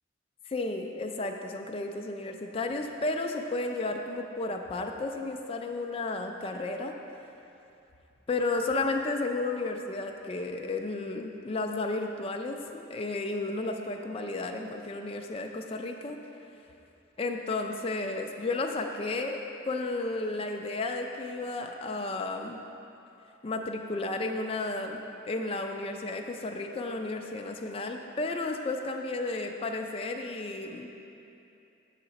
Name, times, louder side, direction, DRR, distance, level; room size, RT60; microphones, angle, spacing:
voice 1, 0.5-6.9 8.3-16.2 17.2-19.4 19.7-22.6 23.4-30.9, left 2 dB, 30° left, 3 dB, 0.4 m, -33 dB
7.4 x 5.8 x 4.0 m, 2.8 s
head